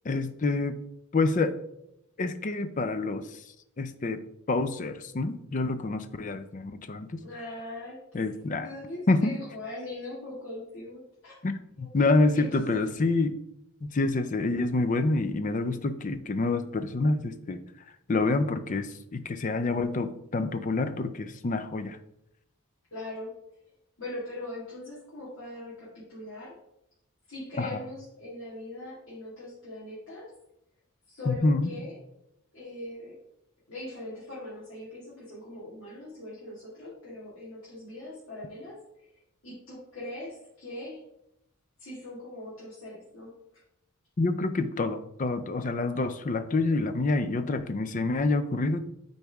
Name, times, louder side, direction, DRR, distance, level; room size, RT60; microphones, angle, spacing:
voice 1, 0.0-0.8 1.1-1.6 2.2-3.3 3.8-4.2 4.5-7.1 8.1-8.7 9.1-9.3 11.4-13.4 13.8-17.6 18.1-22.0 27.6-27.8 31.3-31.7 44.2-48.9, left 3 dB, 35° left, 11 dB, 0.4 m, -27 dB
voice 2, 7.2-8.0 8.6-11.4 11.8-11.9 12.3-12.8 22.9-23.3 24.0-26.5 27.3-30.3 31.1-32.0 32.5-33.2 33.7-39.1 39.4-41.0 41.8-43.3, left 1 dB, 65° left, -8 dB, 2.0 m, -41 dB
8.2 x 4.1 x 3.5 m, 0.80 s
head